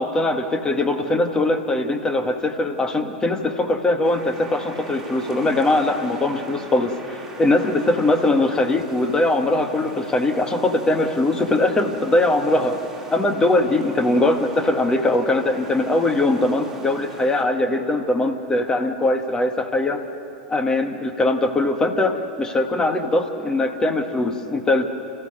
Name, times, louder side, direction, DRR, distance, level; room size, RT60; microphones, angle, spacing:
voice 1, 0.0-12.8 13.1-20.0 20.5-24.9, left 2 dB, 15° left, 6 dB, 1.8 m, -21 dB
sound 1, 4.0-17.4, right 2 dB, 10° right, 3.7 m, -39 dB
30.0 x 15.0 x 6.6 m, 2.8 s
figure-of-eight pair, 90°, 4 cm